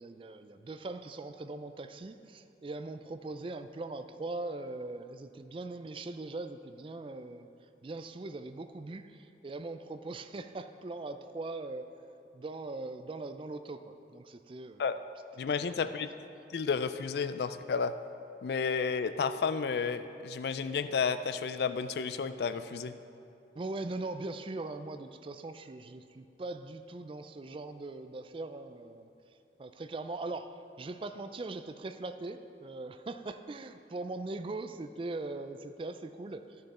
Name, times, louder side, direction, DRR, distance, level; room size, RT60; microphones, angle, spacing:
voice 1, 0.0-7.5 7.8-11.9 12.3-14.8 15.7-15.8 23.6-29.1 29.6-36.7, right 2 dB, 30° right, 10 dB, 0.3 m, -41 dB
voice 2, 15.4-16.1 16.5-18.0 18.4-22.9, left 5 dB, 65° left, 11 dB, 0.4 m, -32 dB
12.0 x 6.6 x 4.2 m, 2.6 s
head